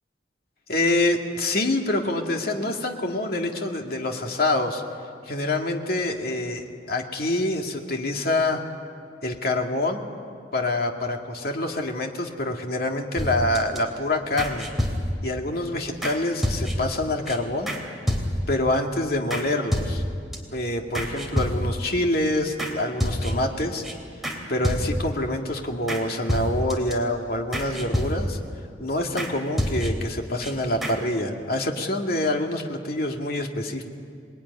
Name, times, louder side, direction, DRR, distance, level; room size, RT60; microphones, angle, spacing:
voice 1, 0.7-4.8 5.3-8.6 9.2-10.0 10.5-14.7 15.2-17.7 18.5-20.0 20.5-23.8 24.5-28.4 28.8-33.8, left 1 dB, 60° left, 2 dB, 2.3 m, -26 dB
sound 1, 13.2-13.8 14.4-15.3 16.0-16.2 16.4-17.0 17.3-17.4 17.7-17.8 18.1-18.6 19.3-19.4 19.7-20.4 20.9-21.9 22.6-22.7 23.0-23.5 23.8-23.9 24.2-24.4 24.6-25.2 25.9-26.0 26.3-26.9 27.5-28.5 29.2-29.3 29.6-30.1 30.4-30.5 30.8-31.0, equal, ahead, 3.4 m, -27 dB
27.5 x 20.5 x 9.8 m, 2.3 s
head